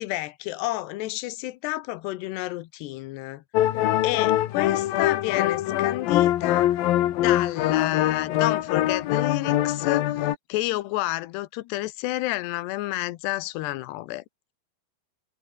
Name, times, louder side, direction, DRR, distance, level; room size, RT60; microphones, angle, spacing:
voice 1, 0.0-3.4 4.0-6.8 7.1-10.1 10.5-14.2, left 18 dB, 90° left, 3.1 m, -30 dB
sound 1, 3.5-10.4, left 13 dB, 70° left, 2.9 m, -23 dB
omnidirectional pair, 4.7 m